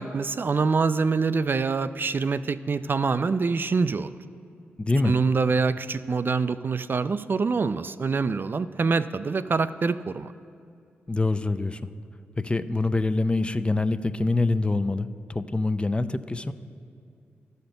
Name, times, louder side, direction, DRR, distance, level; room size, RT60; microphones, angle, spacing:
voice 1, 0.0-4.1 5.0-10.3, right 4 dB, 45° right, 13 dB, 0.3 m, -25 dB
voice 2, 4.8-5.1 11.1-11.9 12.4-16.5, left 2 dB, 20° left, 12 dB, 0.4 m, -25 dB
12.5 x 4.3 x 6.6 m, 2.3 s
supercardioid pair, 40°, 5 cm